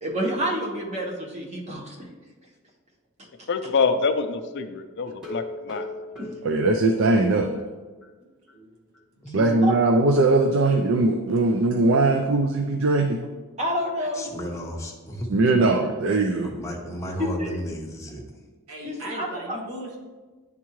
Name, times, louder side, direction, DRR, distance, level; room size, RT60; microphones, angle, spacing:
voice 1, 0.0-2.0 6.2-6.3 9.4-9.7 13.6-14.3 17.2-17.5 18.8-19.6, equal, 30° right, -2 dB, 1.1 m, -29 dB
voice 2, 3.5-5.9, left 4 dB, 55° left, 8 dB, 0.4 m, -25 dB
sound 1, 5.1-7.7 8.0-8.1 8.5-8.6 8.9-9.0, left 1 dB, ahead, 1.3 m, -38 dB
voice 3, 6.4-7.5 9.3-13.3 15.3-16.5, right 2 dB, 60° right, 4 dB, 0.4 m, -20 dB
voice 4, 8.2-8.8 9.1-9.2 18.7-20.0, equal, 75° right, -2 dB, 1.5 m, -38 dB
voice 5, 14.1-15.4 16.4-18.2, equal, 15° left, 0 dB, 0.8 m, -34 dB
9.9 x 3.6 x 3.1 m, 1.3 s
head